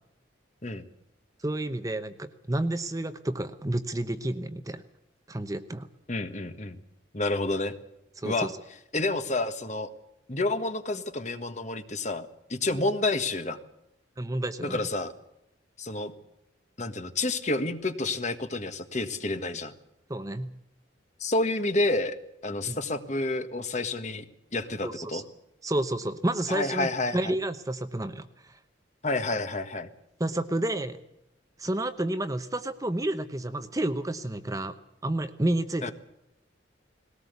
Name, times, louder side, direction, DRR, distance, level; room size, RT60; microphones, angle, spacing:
voice 1, 1.4-4.8 5.3-5.9 8.2-8.5 14.2-14.8 20.1-20.5 22.6-22.8 24.8-25.2 25.6-28.6 30.2-31.0 31.6-34.7 35.0-35.9, right 1 dB, 15° right, 10 dB, 0.8 m, -30 dB
voice 2, 6.1-6.8 7.1-7.8 8.2-8.5 8.9-9.9 10.3-13.6 14.6-15.1 15.8-16.1 16.8-19.7 21.2-22.2 22.4-24.2 24.5-25.2 26.5-27.3 29.0-29.9 35.8-35.9, left 2 dB, 35° left, 9 dB, 1.6 m, -29 dB
20.0 x 18.0 x 8.2 m, 0.81 s
head